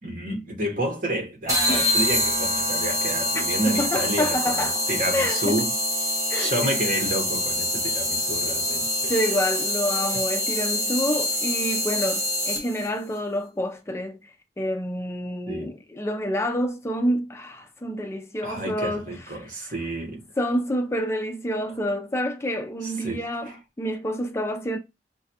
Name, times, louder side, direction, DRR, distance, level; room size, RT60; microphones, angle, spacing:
voice 1, 0.0-5.7 6.3-9.1 15.5-15.7 18.4-20.2 22.8-23.6, right 1 dB, 50° right, 1.1 m, -30 dB
sound 1, 1.5-12.9, left 1 dB, 20° right, 0.8 m, -25 dB
voice 2, 3.8-4.8 5.1-5.5 6.3-6.6 9.1-19.1 19.4-19.7 20.4-24.8, equal, 15° left, 0.4 m, -28 dB
5.7 x 2.2 x 2.8 m
head